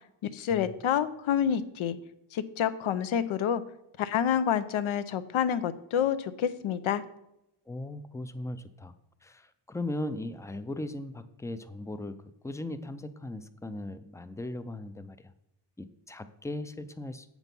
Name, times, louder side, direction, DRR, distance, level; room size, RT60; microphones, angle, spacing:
voice 1, 0.3-2.0 2.3-3.6 4.0-7.0, left 9 dB, 80° left, 13 dB, 0.7 m, -28 dB
voice 2, 7.7-8.9 9.2-12.2 12.4-15.3 15.8-17.3, left 1 dB, 5° left, 11 dB, 0.4 m, -38 dB
8.0 x 6.1 x 5.3 m, 0.84 s
cardioid pair, 120°, 48 cm